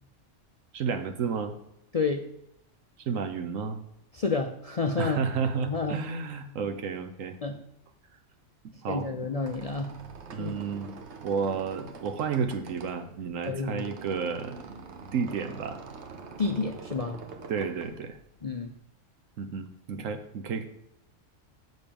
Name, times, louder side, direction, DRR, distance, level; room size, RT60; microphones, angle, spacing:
voice 1, 0.7-1.6 3.0-3.8 5.0-7.4 8.6-9.1 10.3-10.9 11.2-14.7 15.1-15.8 17.5-18.2 19.4-20.7, right 6 dB, 85° right, 8 dB, 1.3 m, -31 dB
voice 2, 1.9-2.2 4.1-5.2 5.7-6.0 7.4-7.6 8.9-9.9 10.4-10.5 13.5-13.9 16.4-17.2 18.4-18.7, left 4 dB, 50° left, 4 dB, 0.4 m, -29 dB
Squeak, 9.1-18.8, right 4 dB, 65° right, 1.1 m, -45 dB
6.4 x 5.4 x 6.9 m, 0.79 s
omnidirectional pair, 1.3 m